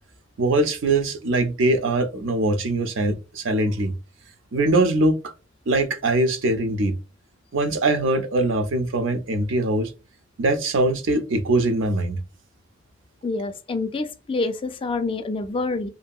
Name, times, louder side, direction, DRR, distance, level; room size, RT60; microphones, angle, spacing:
voice 1, 0.4-3.9 4.5-5.3 5.7-6.9 7.5-9.9 10.4-12.2, right 2 dB, 70° right, 0.5 m, -22 dB
voice 2, 13.2-15.9, left 3 dB, 30° left, 0.3 m, -27 dB
2.7 x 2.6 x 2.3 m
head